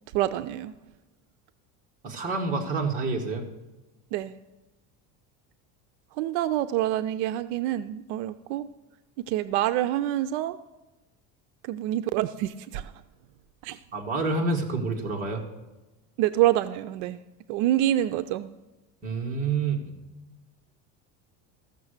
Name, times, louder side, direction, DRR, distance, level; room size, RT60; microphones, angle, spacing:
voice 1, 0.1-0.7 4.1-4.3 6.2-8.7 9.2-10.6 11.6-12.9 13.6-13.8 16.2-17.2 17.5-18.5, right 13 dB, 80° right, 12 dB, 0.5 m, -26 dB
voice 2, 2.0-3.4 13.9-15.4 19.0-19.9, right 3 dB, 25° right, -1 dB, 1.5 m, -28 dB
14.5 x 6.7 x 6.5 m, 1.1 s
cardioid pair, 170°, 35 cm